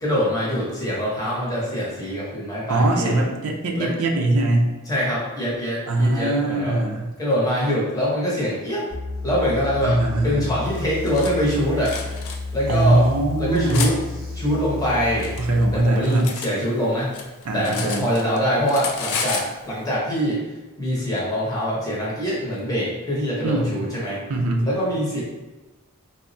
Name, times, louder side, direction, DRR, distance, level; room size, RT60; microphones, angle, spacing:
voice 1, 0.0-3.2 3.7-4.0 4.9-6.8 7.2-8.8 9.2-12.0 12.5-13.1 13.4-14.0 14.3-15.3 15.7-17.1 17.5-20.5 20.8-24.2 24.6-25.2, equal, 15° left, -6 dB, 0.7 m, -24 dB
voice 2, 2.7-4.7 5.9-7.1 9.8-10.5 12.7-13.9 15.4-16.3 17.4-18.0 23.4-23.8 24.3-24.7, right 2 dB, 90° right, 2 dB, 0.5 m, -21 dB
sound 1, 8.9-15.8, left 3 dB, 15° right, 0.7 m, -32 dB
Cutlery silverware, 10.7-11.3 11.8-12.4 13.0-13.9 14.8-16.5 16.8-18.4 18.7-19.5, left 5 dB, 75° left, 0.4 m, -31 dB
3.3 x 2.0 x 2.6 m, 1.1 s
head